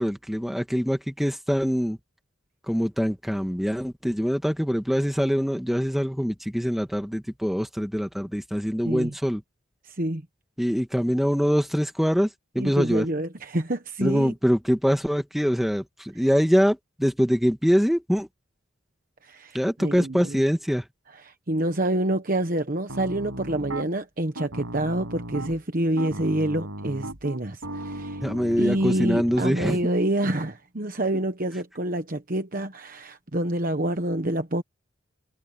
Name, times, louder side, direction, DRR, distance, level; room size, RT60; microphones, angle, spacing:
voice 1, 0.0-2.0 2.7-9.4 10.6-12.3 12.5-13.0 14.0-18.3 19.5-20.8 28.2-29.9, equal, ahead, 1.7 m, -24 dB
voice 2, 9.8-10.2 12.6-14.3 19.2-20.4 21.2-28.2 28.6-34.6, right 1 dB, 40° right, 1.1 m, -27 dB
Piano, 22.9-23.9 24.3-25.6 26.0-29.4, right 1 dB, 85° right, 6.3 m, -36 dB
head